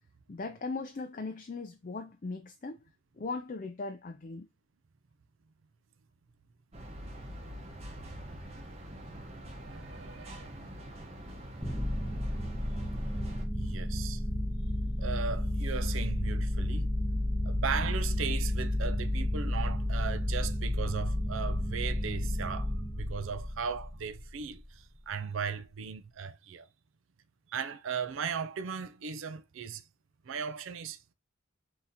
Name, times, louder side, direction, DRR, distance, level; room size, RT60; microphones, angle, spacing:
voice 1, 0.3-2.8 3.2-4.5, left 3 dB, 40° left, 0.5 m, -38 dB
sound 1, 6.7-13.5, equal, 30° right, 0.9 m, -45 dB
voice 2, 9.6-10.5 13.3-14.2 15.0-16.9 17.4-26.7 27.5-29.8 30.2-31.1, right 6 dB, 80° right, 0.5 m, -37 dB
sound 2, 11.6-24.5, left 1 dB, ahead, 0.8 m, -32 dB
3.7 x 2.9 x 4.0 m
head